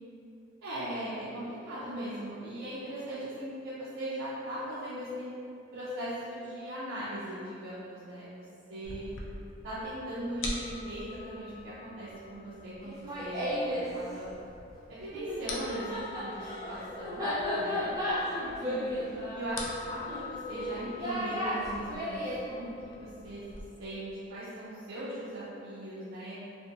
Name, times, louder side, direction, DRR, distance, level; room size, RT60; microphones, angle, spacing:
voice 1, 0.6-5.3 5.7-9.1 9.6-14.3 14.9-17.2 17.6-17.9 18.6-23.4 23.8-26.4, right 1 dB, 80° right, -11 dB, 0.5 m, -39 dB
sound 1, 8.8-23.6, left 3 dB, 65° left, 0.3 m, -45 dB
Laughter, 12.8-13.9 15.1-22.4, equal, 15° right, 0.4 m, -34 dB
2.4 x 2.1 x 2.7 m, 2.7 s
head